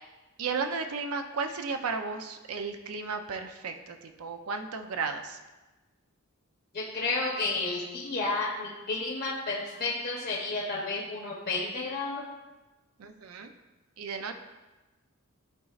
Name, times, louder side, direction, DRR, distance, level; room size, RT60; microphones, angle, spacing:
voice 1, 0.4-5.4 13.0-13.5 14.0-14.3, right 4 dB, 85° right, 6 dB, 0.5 m, -34 dB
voice 2, 6.7-12.2, left 3 dB, 45° left, -3 dB, 0.8 m, -31 dB
11.5 x 4.0 x 2.4 m, 1.1 s
head